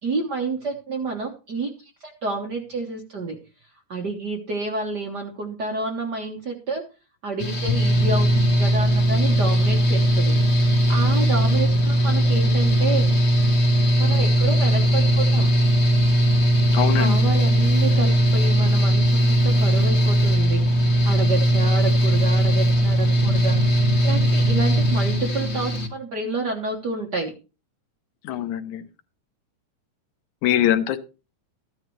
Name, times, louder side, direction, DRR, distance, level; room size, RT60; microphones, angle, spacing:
voice 1, 0.0-1.7 2.0-3.4 3.9-6.8 7.2-10.3 10.9-13.1 14.0-15.5 16.9-23.6 24.0-27.3, right 3 dB, 50° right, 2 dB, 1.4 m, -29 dB
Mechanical fan, 7.4-25.9, right 1 dB, 30° left, 1.2 m, -19 dB
voice 2, 16.7-17.3 28.2-28.9 30.4-31.0, left 11 dB, 80° left, 10 dB, 2.2 m, -23 dB
14.0 x 10.5 x 3.2 m, 0.30 s
omnidirectional pair, 3.4 m